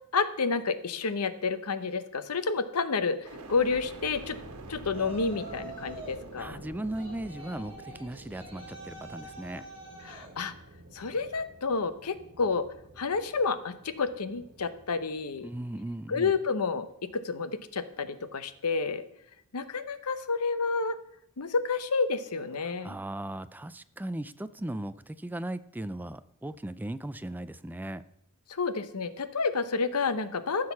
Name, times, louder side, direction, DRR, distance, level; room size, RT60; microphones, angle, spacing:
voice 1, 0.1-4.4 4.7-6.6 10.0-10.5 10.9-12.7 13.0-15.5 16.1-19.0 19.5-21.0 21.4-23.0 28.5-30.7, left 4 dB, 90° left, 12 dB, 0.8 m, -30 dB
sound 1, 3.2-17.3 17.8-18.5, right 2 dB, 90° right, 1.4 m, -48 dB
Yell, 4.9-6.2 6.9-10.3, right 1 dB, 25° right, 4.1 m, -46 dB
voice 2, 6.4-9.7 15.4-16.3 22.6-28.0, right 1 dB, 10° right, 13 dB, 0.3 m, -37 dB
14.0 x 6.4 x 5.8 m, 0.76 s
head